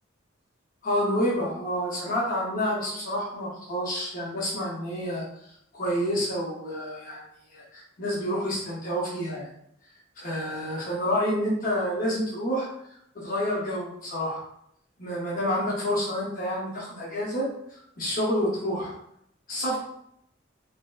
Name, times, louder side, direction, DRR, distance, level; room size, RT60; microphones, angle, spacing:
voice 1, 0.8-7.2 7.5-9.5 10.2-14.4 15.0-18.9 19.5-19.8, equal, 45° left, -5 dB, 0.6 m, -29 dB
3.1 x 2.6 x 2.2 m, 0.74 s
head